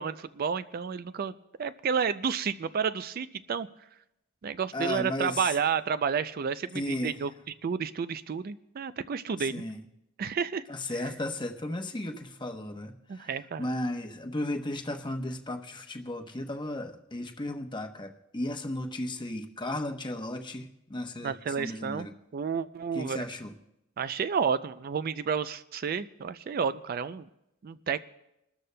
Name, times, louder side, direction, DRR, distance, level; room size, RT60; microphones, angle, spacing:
voice 1, 0.0-1.3 1.6-3.7 4.4-7.3 7.6-9.6 10.2-10.6 10.9-11.0 13.1-13.7 21.2-22.1 22.3-23.3 24.0-27.2 27.6-28.0, right 6 dB, 45° right, 14 dB, 0.4 m, -31 dB
voice 2, 4.7-5.5 6.7-7.1 9.4-9.8 10.7-13.3 13.6-22.1 22.9-23.5, left 1 dB, 20° left, 5 dB, 0.9 m, -35 dB
28.0 x 13.0 x 2.2 m, 0.89 s
head